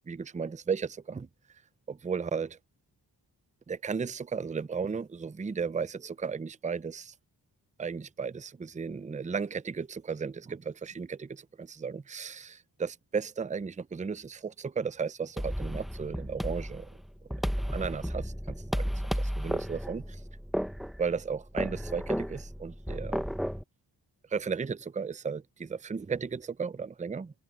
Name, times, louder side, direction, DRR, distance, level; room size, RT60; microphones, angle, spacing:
voice 1, 0.1-1.3 1.9-2.6 3.7-7.1 7.8-16.9 17.7-18.9 19.2-20.0 21.0-23.2 24.3-27.4, right 5 dB, 20° right, 0.5 m, -35 dB
sound 1, 15.4-23.6, equal, ahead, 1.1 m, -33 dB
cardioid pair, 60°, 43 cm